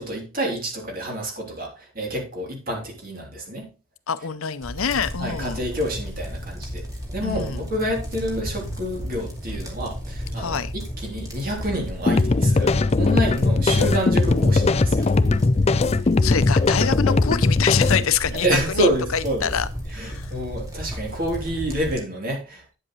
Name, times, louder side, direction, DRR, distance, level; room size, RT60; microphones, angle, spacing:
voice 1, 0.0-3.7 5.2-6.9 7.1-15.1 18.4-19.6 19.9-22.6, right 1 dB, 40° right, 3.2 m, -28 dB
voice 2, 4.1-5.6 7.2-7.6 10.4-10.7 16.2-19.7 19.9-20.3, left 7 dB, 75° left, 0.7 m, -26 dB
sound 1, 4.6-21.9, equal, 15° right, 2.4 m, -33 dB
sound 2, 12.1-18.1, left 3 dB, 30° left, 0.4 m, -19 dB
9.8 x 7.8 x 3.1 m
head